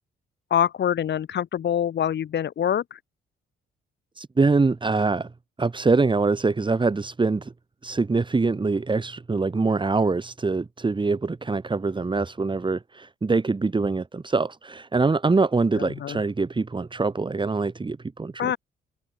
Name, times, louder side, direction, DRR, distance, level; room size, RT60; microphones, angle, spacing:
voice 1, 0.5-3.0 15.8-16.2 18.4-18.6, left 9 dB, 60° left, 4.3 m, -25 dB
voice 2, 4.2-5.3 5.6-7.5 7.8-18.6, right 3 dB, 25° right, 3.4 m, -24 dB
open air
cardioid pair, 90°, 20 cm